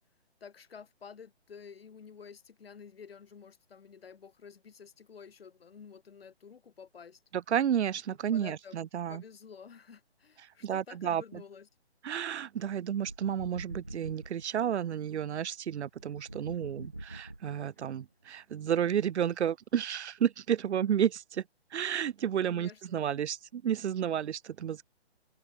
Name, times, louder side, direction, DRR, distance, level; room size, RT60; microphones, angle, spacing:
voice 1, 0.4-7.2 8.2-8.8 9.1-11.7 22.4-23.0, left 6 dB, 60° left, 4.3 m, -50 dB
voice 2, 7.3-9.2 10.6-11.4 12.0-21.4 21.7-24.8, right 9 dB, 80° right, 0.5 m, -31 dB
sound 1, 12.9-14.5 16.0-17.8, right 1 dB, 10° right, 0.4 m, -44 dB
hypercardioid pair, 150°, 33 cm